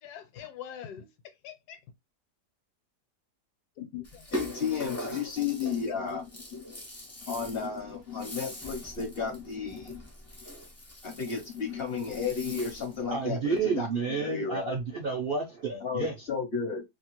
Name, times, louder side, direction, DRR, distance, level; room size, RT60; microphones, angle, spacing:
voice 1, 0.0-1.1 1.4-1.8 3.8-4.5 5.0-5.3, left 10 dB, 75° left, 1.2 m, -43 dB
Rattle (instrument), 4.0-13.0, equal, 20° left, 0.4 m, -42 dB
voice 2, 4.3-6.7 7.3-10.1 11.0-14.8 15.8-16.8, left 6 dB, 55° left, 0.7 m, -33 dB
voice 3, 13.1-16.3, right 5 dB, 65° right, 0.5 m, -30 dB
2.8 x 2.4 x 2.9 m
omnidirectional pair, 1.8 m